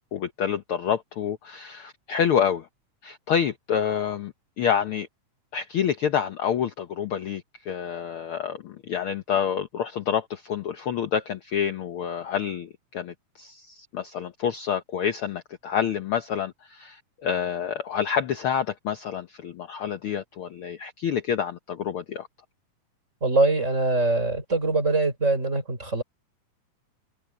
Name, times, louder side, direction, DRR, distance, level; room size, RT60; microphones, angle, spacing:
voice 1, 0.1-2.7 3.0-5.1 5.5-22.3, left 8 dB, 70° left, 1.3 m, -28 dB
voice 2, 23.2-26.0, right 3 dB, 20° right, 4.6 m, -23 dB
omnidirectional pair, 3.7 m